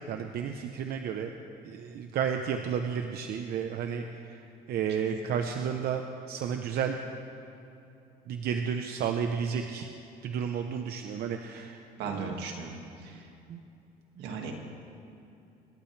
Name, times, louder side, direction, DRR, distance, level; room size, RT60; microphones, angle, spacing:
voice 1, 0.1-1.3 1.6-4.4 4.7-7.0 8.3-9.9 10.2-12.3 13.5-13.6 14.2-14.3, right 7 dB, 65° right, 5 dB, 0.8 m, -32 dB
voice 2, 12.0-13.3 14.2-14.5, right 5 dB, 90° right, 2 dB, 2.0 m, -37 dB
26.0 x 11.5 x 3.3 m, 2.8 s
cardioid pair, 110°, 17 cm